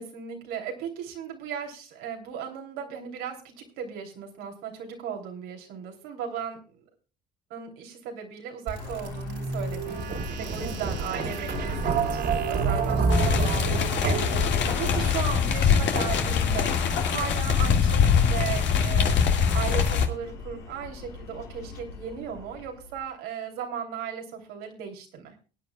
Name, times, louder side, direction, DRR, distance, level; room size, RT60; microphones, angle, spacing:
voice 1, 0.0-6.6 7.5-16.7 17.0-25.3, right 7 dB, 80° right, 2 dB, 3.1 m, -36 dB
sound 1, 8.7-15.4, right 5 dB, 55° right, 3.0 m, -29 dB
Chatter / Car passing by / Traffic noise roadway noise, 8.8-23.1, left 4 dB, 80° left, 3.0 m, -39 dB
sound 2, 13.1-20.1, left 7 dB, 60° left, 1.9 m, -23 dB
23.0 x 9.4 x 2.3 m, 0.35 s
supercardioid pair, 70°, 21 cm